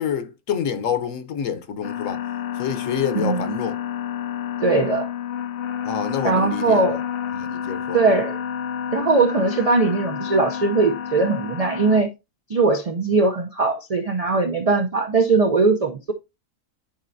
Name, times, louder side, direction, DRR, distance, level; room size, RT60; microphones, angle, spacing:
voice 1, 0.0-2.2 2.6-3.8 5.8-7.0 7.3-8.0, left 7 dB, 65° left, 1.1 m, -27 dB
sound 1, 1.8-12.0, left 9 dB, 80° left, 0.5 m, -29 dB
voice 2, 4.6-5.1 6.2-7.0 7.9-8.4 8.9-12.1 12.5-16.1, right 3 dB, 75° right, 0.3 m, -20 dB
10.0 x 4.2 x 2.6 m
omnidirectional pair, 1.6 m